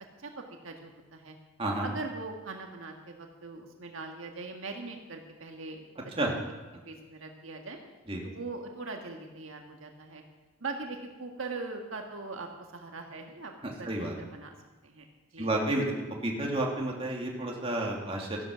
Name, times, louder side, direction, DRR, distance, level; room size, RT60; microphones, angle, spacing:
voice 1, 0.2-1.4 1.8-5.9 6.8-7.8 8.2-10.2 10.6-13.5 13.8-14.5 14.8-15.1 15.3-15.5, right 3 dB, 70° right, 3 dB, 1.6 m, -41 dB
voice 2, 13.6-14.1 15.4-15.9 16.2-18.4, right 1 dB, 25° right, -1 dB, 2.3 m, -30 dB
14.5 x 11.5 x 6.2 m, 1.2 s
head